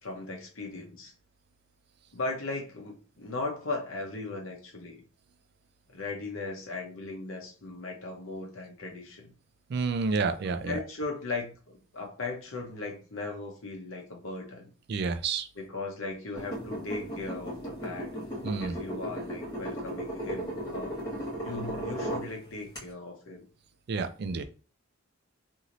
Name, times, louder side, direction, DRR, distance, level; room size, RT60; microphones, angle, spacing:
voice 1, 0.0-1.1 2.1-5.0 5.9-9.3 10.4-14.7 15.5-18.1 18.6-20.9 21.4-23.4, left 3 dB, 70° left, 1 dB, 0.9 m, -37 dB
voice 2, 9.7-10.8 14.9-15.5 18.4-18.8 23.9-24.4, right 4 dB, 50° right, 10 dB, 0.3 m, -29 dB
sound 1, 16.3-22.3 22.7-22.8, right 1 dB, 20° left, 1.3 m, -36 dB
3.0 x 2.7 x 2.6 m, 0.38 s
head